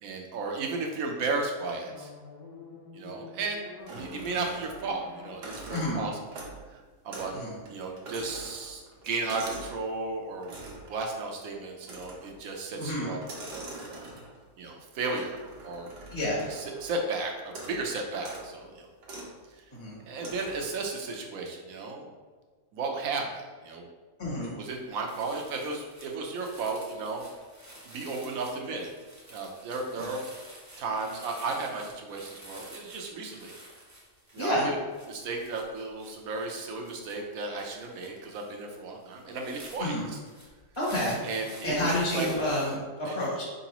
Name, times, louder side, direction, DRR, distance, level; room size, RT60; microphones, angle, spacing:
voice 1, 0.0-2.1 2.9-6.4 6.7-7.3 7.7-10.6 10.9-13.7 14.6-15.9 16.5-18.9 19.5-19.6 20.1-22.1 22.7-23.8 24.6-27.2 27.8-28.9 29.3-30.2 30.8-33.6 34.3-34.7 35.1-40.2 41.2-42.3 43.1-43.2, right 3 dB, 65° right, 1 dB, 1.0 m, -34 dB
sound 1, 1.8-7.0, left 3 dB, 85° left, 1.4 m, -48 dB
sound 2, 3.9-4.9 5.3-6.7 7.1-7.4 7.7-9.8 10.4-10.9 11.8-12.4 13.2-14.5 15.2-16.9 17.5-17.8 18.2-18.5 19.0-19.3 20.2-20.8, right 2 dB, 85° right, 1.6 m, -43 dB
voice 2, 5.7-6.0 7.3-7.6 12.8-13.1 16.1-16.5 19.7-20.0 24.2-24.6 30.0-30.1 34.4-34.7 39.8-40.0 40.8-41.2 41.6-43.4, left 1 dB, 20° left, -5 dB, 0.9 m, -29 dB
sound 3, 24.7-24.8 25.1-42.7, right 1 dB, 25° right, 0.3 m, -50 dB
4.6 x 3.9 x 2.9 m, 1.4 s
omnidirectional pair, 1.7 m